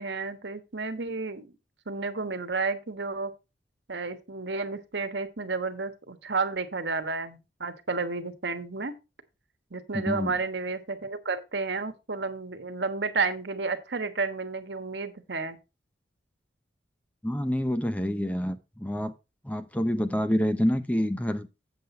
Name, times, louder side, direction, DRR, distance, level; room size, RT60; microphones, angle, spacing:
voice 1, 0.0-1.5 1.9-3.3 3.9-8.9 9.7-15.6, right 4 dB, 80° right, 1.3 m, -31 dB
voice 2, 9.9-10.3 17.2-19.1 19.4-21.5, equal, 10° left, 0.6 m, -27 dB
8.0 x 7.7 x 4.3 m
head